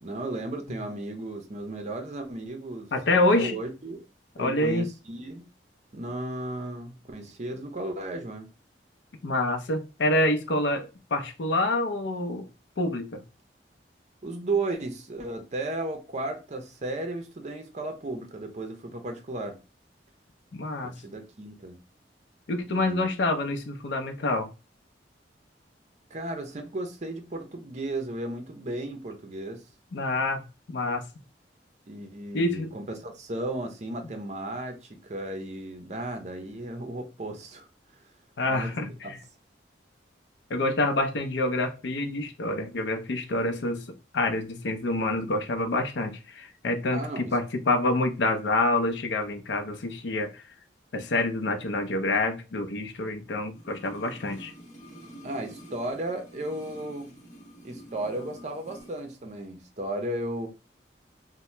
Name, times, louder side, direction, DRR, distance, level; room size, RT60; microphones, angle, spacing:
voice 1, 0.0-4.0 4.4-5.5 5.9-8.5 14.2-19.6 20.8-21.8 22.7-23.1 26.1-29.6 31.9-37.7 38.5-39.1 46.9-47.4 55.2-57.1 57.6-60.5, right 2 dB, 40° right, 0.6 m, -35 dB
voice 2, 2.9-3.5 4.4-4.9 9.2-12.5 12.8-13.2 20.5-20.9 22.5-24.5 29.9-30.4 30.7-31.0 32.3-32.7 38.4-39.2 40.5-43.8 44.1-50.4 50.9-54.5, left 2 dB, 75° left, 0.5 m, -27 dB
sound 1, 53.5-59.0 59.3-59.4, right 1 dB, 40° left, 0.9 m, -47 dB
2.8 x 2.1 x 3.2 m
head